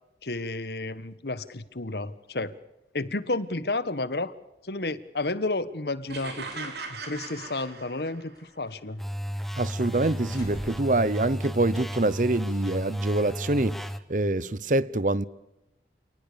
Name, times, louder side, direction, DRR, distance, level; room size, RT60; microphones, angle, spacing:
voice 1, 0.2-2.5 2.9-4.3 4.6-9.0, left 2 dB, 70° left, 1.4 m, -31 dB
sound 1, 6.0-6.8 7.2-7.3 8.0-9.1 9.3-9.7 10.1-11.1 11.9-12.1, equal, 20° left, 5.2 m, -46 dB
sound 2, 6.1-8.4, right 4 dB, 75° right, 4.4 m, -39 dB
sound 3, 9.0-14.0, equal, ahead, 1.0 m, -34 dB
voice 2, 9.6-15.3, right 2 dB, 45° right, 0.8 m, -25 dB
28.5 x 19.0 x 6.9 m
head